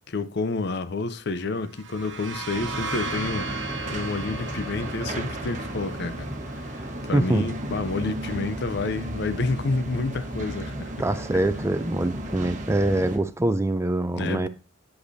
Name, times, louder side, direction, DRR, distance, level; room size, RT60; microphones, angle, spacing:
voice 1, 0.1-3.5 3.9-6.3 6.6-11.0 11.3-11.4 14.2-14.5, left 3 dB, 55° left, 0.6 m, -29 dB
sound 1, 1.6-9.2, right 3 dB, 65° right, 1.1 m, -37 dB
sound 2, 2.5-13.2, right 1 dB, 40° right, 1.2 m, -34 dB
voice 2, 7.1-7.5 11.0-14.5, right 1 dB, 15° right, 0.4 m, -24 dB
8.3 x 8.1 x 2.7 m
head